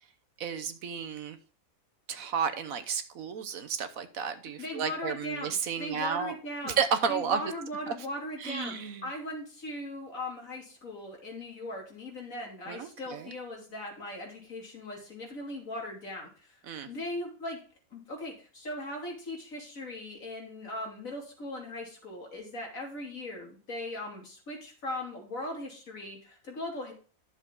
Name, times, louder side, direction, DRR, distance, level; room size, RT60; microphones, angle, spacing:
voice 1, 0.4-1.4 2.1-6.3 6.6-7.4 7.9-8.0 8.4-9.1 12.7-13.3 16.7-16.9, right 7 dB, 70° right, 10 dB, 1.4 m, -32 dB
voice 2, 4.6-6.8 7.1-16.6 16.9-17.6 17.9-26.9, left 1 dB, 65° left, -1 dB, 3.5 m, -39 dB
11.5 x 7.0 x 3.8 m, 0.39 s
omnidirectional pair, 1.6 m